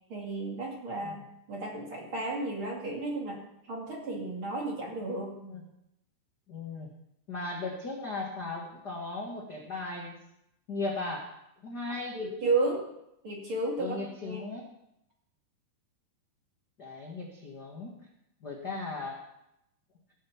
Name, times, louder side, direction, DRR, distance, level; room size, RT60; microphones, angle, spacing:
voice 1, 0.1-1.2 1.5-3.4 3.7-5.3 12.1-12.8 13.2-14.4, right 2 dB, 40° right, -1 dB, 2.4 m, -32 dB
voice 2, 6.5-6.9 7.3-10.2 10.7-11.3 11.6-12.2 13.8-14.7 16.8-18.1 18.4-19.2, left 3 dB, 50° left, -1 dB, 1.2 m, -37 dB
17.5 x 7.9 x 7.2 m, 0.83 s
omnidirectional pair, 4.8 m